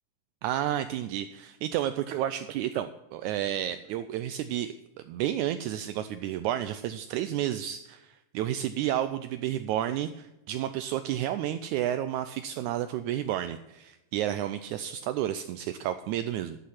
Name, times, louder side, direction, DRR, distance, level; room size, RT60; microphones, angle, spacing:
voice 1, 0.4-4.8 5.1-16.6, right 12 dB, 80° right, 11 dB, 1.8 m, -31 dB
12.0 x 7.6 x 5.8 m, 0.93 s
omnidirectional pair, 3.7 m